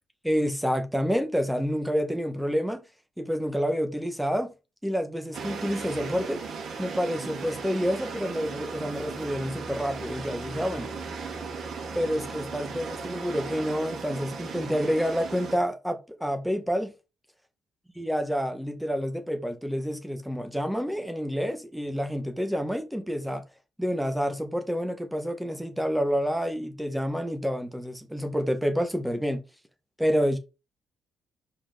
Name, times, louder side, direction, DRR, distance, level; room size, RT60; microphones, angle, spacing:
voice 1, 0.2-2.8 3.2-4.5 4.8-6.4 6.8-10.9 11.9-16.9 17.9-23.4 23.8-29.4 30.0-30.4, equal, 5° right, 1.7 m, -28 dB
sound 1, 5.3-15.6, right 5 dB, 65° right, 3.3 m, -37 dB
5.8 x 4.9 x 5.2 m
cardioid pair, 75°, 0 cm